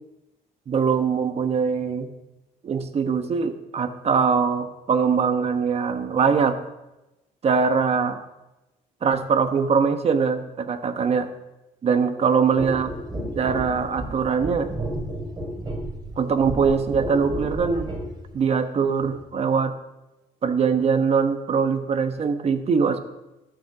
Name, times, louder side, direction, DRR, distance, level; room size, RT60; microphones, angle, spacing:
voice 1, 0.7-2.1 2.6-6.5 7.4-8.2 9.0-11.3 11.8-12.9 13.3-14.7 16.2-17.9 18.3-19.7 20.4-23.0, right 5 dB, 45° right, 9 dB, 1.1 m, -22 dB
sound 1, 12.6-18.1 19.0-19.2, right 1 dB, 30° right, 3.2 m, -32 dB
12.5 x 6.7 x 6.0 m, 0.99 s
cardioid pair, 95°, 15 cm